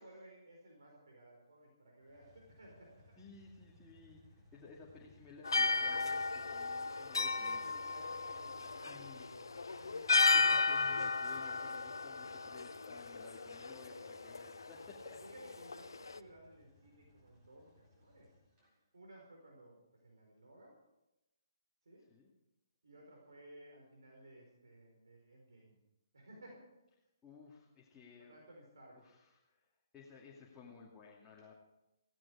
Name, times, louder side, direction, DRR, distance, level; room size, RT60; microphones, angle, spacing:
voice 1, 0.0-2.9 7.4-10.8 15.2-18.3 18.9-20.7 21.8-22.0 22.8-25.8 26.1-26.6 28.2-29.0, right 1 dB, 80° right, 0 dB, 5.0 m, -58 dB
sound 1, 2.0-18.7, left 1 dB, 20° right, 7.2 m, -64 dB
voice 2, 3.2-7.6 8.7-9.3 10.3-15.2 22.1-22.3 27.2-28.4 29.0-29.7 29.9-31.5, left 4 dB, 10° left, -5 dB, 2.4 m, -56 dB
sound 2, 5.4-16.2, left 4 dB, 85° left, 0.9 m, -34 dB
16.5 x 15.5 x 4.9 m, 0.94 s
hypercardioid pair, 145°, 2 cm